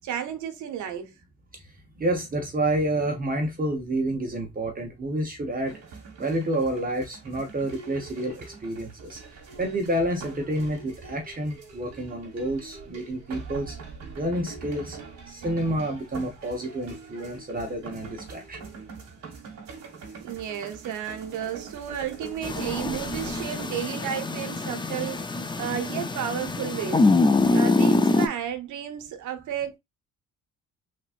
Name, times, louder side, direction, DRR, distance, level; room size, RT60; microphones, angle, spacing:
voice 1, 0.0-1.1 20.2-27.1 27.5-29.8, right 9 dB, 75° right, 0.8 m, -32 dB
voice 2, 1.6-5.7 6.2-13.8 14.2-15.0 15.3-18.6, right 1 dB, 30° right, 0.9 m, -29 dB
sound 1, 5.7-23.7, right 4 dB, 60° right, 1.5 m, -43 dB
sound 2, 22.4-28.3, left 3 dB, 15° left, 0.5 m, -24 dB
3.5 x 3.0 x 2.5 m
cardioid pair, 90°, 30 cm